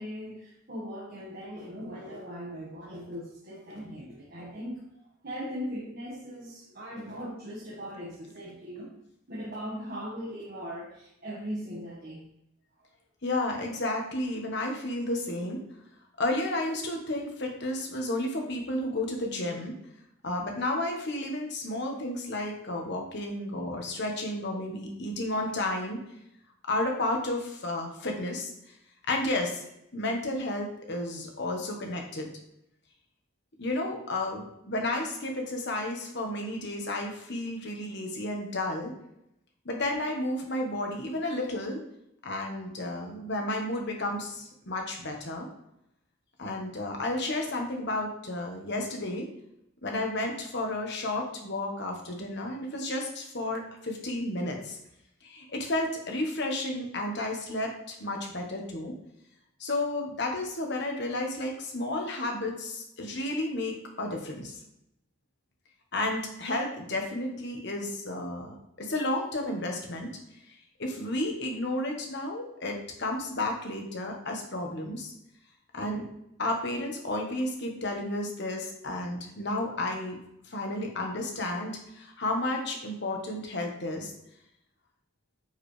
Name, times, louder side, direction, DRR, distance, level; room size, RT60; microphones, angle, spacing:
voice 1, 0.0-4.8 5.2-8.9 9.3-12.2, equal, 45° right, -5 dB, 1.6 m, -39 dB
voice 2, 13.2-15.6 16.2-19.7 20.2-26.0 26.7-28.5 29.1-29.6 29.9-32.3 33.6-38.9 39.6-41.8 42.2-45.5 46.4-49.3 49.8-54.8 55.2-58.9 59.6-64.5 65.9-70.1 70.8-75.1 75.7-76.0 76.4-80.2 80.5-84.1, left 1 dB, 55° left, 2 dB, 1.3 m, -32 dB
9.5 x 5.0 x 3.3 m, 0.79 s
head